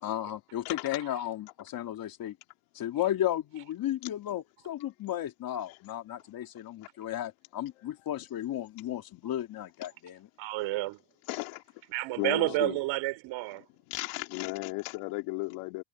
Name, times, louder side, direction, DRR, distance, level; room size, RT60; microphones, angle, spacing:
voice 1, 0.0-2.4 2.7-10.3 12.6-12.8, left 12 dB, 45° left, 2.8 m, -34 dB
voice 2, 1.0-1.3 3.0-3.1 10.4-11.0 11.9-13.7, right 19 dB, 65° right, 4.1 m, -31 dB
voice 3, 11.3-11.6 12.2-12.5 13.9-15.8, left 23 dB, 75° left, 2.4 m, -35 dB
cardioid pair, 125°, 49 cm